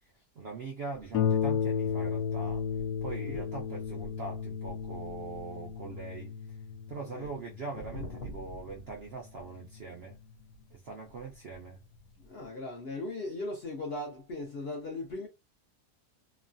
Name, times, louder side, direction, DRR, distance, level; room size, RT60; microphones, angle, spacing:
voice 1, 0.4-2.7 3.0-6.6 6.9-10.2 10.7-11.8, right 4 dB, 70° right, 0.6 m, -42 dB
Harp, 1.1-10.3 11.2-11.3 11.7-11.8, left 7 dB, 90° left, 1.2 m, -34 dB
voice 2, 7.9-8.5 12.2-15.3, left 2 dB, 60° left, 0.7 m, -38 dB
3.0 x 2.2 x 2.5 m
omnidirectional pair, 1.7 m